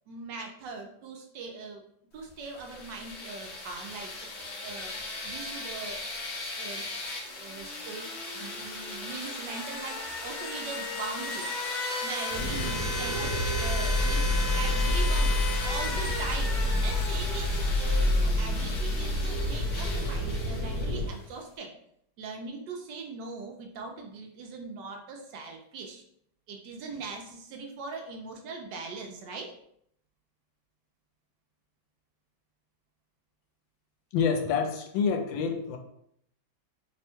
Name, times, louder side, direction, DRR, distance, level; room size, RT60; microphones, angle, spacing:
voice 1, 0.1-1.9 2.1-6.0 6.6-6.9 7.4-11.5 12.0-16.6 16.8-21.7 22.2-26.0 26.5-29.5, right 4 dB, 70° right, 2 dB, 1.1 m, -41 dB
sound 1, 2.5-21.1, left 2 dB, 55° left, 0.7 m, -36 dB
sound 2, 12.3-21.1, left 1 dB, 35° right, 1.3 m, -28 dB
voice 2, 34.1-35.8, left 6 dB, 80° left, 5 dB, 1.3 m, -27 dB
3.3 x 2.2 x 4.3 m, 0.70 s
omnidirectional pair, 2.1 m